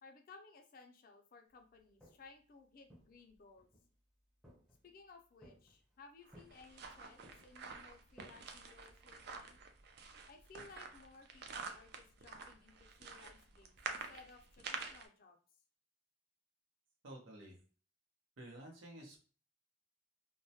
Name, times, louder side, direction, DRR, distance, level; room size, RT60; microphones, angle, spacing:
voice 1, 0.0-3.7 4.8-9.6 10.3-15.4, left 4 dB, 50° left, 5 dB, 0.4 m, -59 dB
Walk footsteps, 1.8-2.4 2.9-3.9 4.4-5.0 5.4-5.9 6.3-6.9 7.2-9.4, equal, ahead, 0.5 m, -62 dB
sound 1, 6.3-15.1, right 5 dB, 55° right, 0.3 m, -48 dB
voice 2, 17.0-17.6 18.4-19.2, right 1 dB, 85° right, 1 dB, 0.8 m, -51 dB
2.2 x 2.0 x 2.7 m, 0.39 s
head